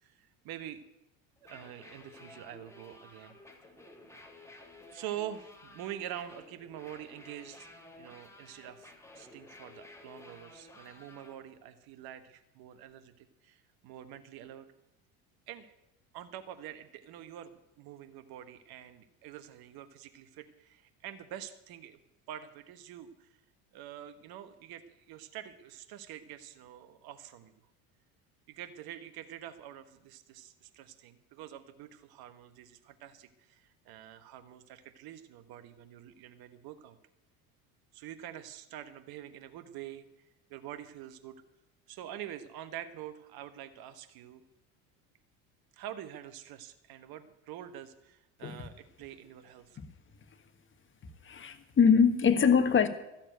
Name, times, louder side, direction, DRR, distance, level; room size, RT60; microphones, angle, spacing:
voice 1, 0.0-0.8 1.4-3.3 4.9-14.7 15.5-15.7 16.1-22.0 22.3-23.3 23.7-27.5 28.5-37.0 37.9-41.4 41.9-44.4 45.7-49.8, right 11 dB, 55° right, 1.2 m, -46 dB
sound 1, 1.4-11.3, left 2 dB, 5° left, 2.5 m, -54 dB
voice 2, 51.2-52.9, left 6 dB, 25° left, 1.6 m, -23 dB
13.0 x 7.3 x 9.1 m
supercardioid pair, 95°, 43 cm